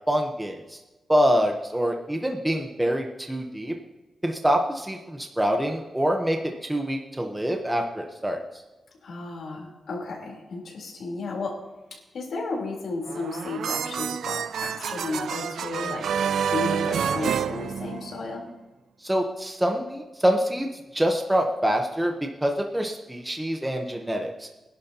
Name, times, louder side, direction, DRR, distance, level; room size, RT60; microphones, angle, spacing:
voice 1, 0.1-0.8 1.1-3.7 4.2-8.4 19.0-20.7 20.9-22.1 22.4-24.5, equal, 5° right, 2 dB, 1.1 m, -25 dB
voice 2, 9.0-11.6 11.9-18.5, left 3 dB, 70° left, -1 dB, 3.9 m, -33 dB
sound 1, 13.1-18.4, right 8 dB, 90° right, 0.4 m, -28 dB
23.5 x 11.0 x 3.0 m, 1.1 s
wide cardioid pair, 155°, 0 cm